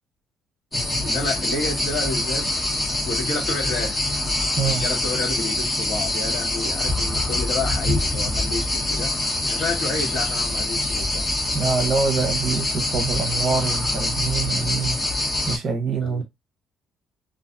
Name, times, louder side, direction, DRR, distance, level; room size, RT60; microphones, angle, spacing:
sound 1, 0.7-15.6, left 1 dB, 15° left, 1.0 m, -25 dB
voice 1, 1.0-2.5 3.1-4.0 4.6-9.2 9.4-11.3 16.0-16.2, left 3 dB, 55° left, 1.3 m, -30 dB
voice 2, 11.5-15.0 15.5-16.2, right 5 dB, 45° right, 0.7 m, -25 dB
2.5 x 2.3 x 2.5 m
cardioid pair, 135°, 0 cm